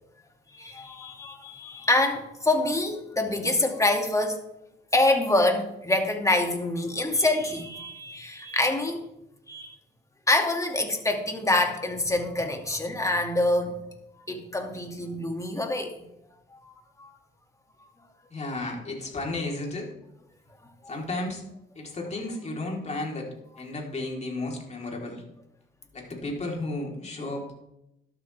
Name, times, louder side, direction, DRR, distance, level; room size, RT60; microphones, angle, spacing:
voice 1, 0.5-4.4 4.9-9.0 9.5-9.7 10.3-13.8 14.3-15.9 16.5-16.7 17.0-17.1 20.8-20.9, left 2 dB, 15° left, 3 dB, 2.4 m, -26 dB
voice 2, 18.3-19.9 20.9-21.4 21.8-23.3 23.6-25.2 25.9-27.5, left 2 dB, 35° left, -1 dB, 4.0 m, -33 dB
12.5 x 12.0 x 3.6 m, 0.85 s
cardioid pair, 90°, 20 cm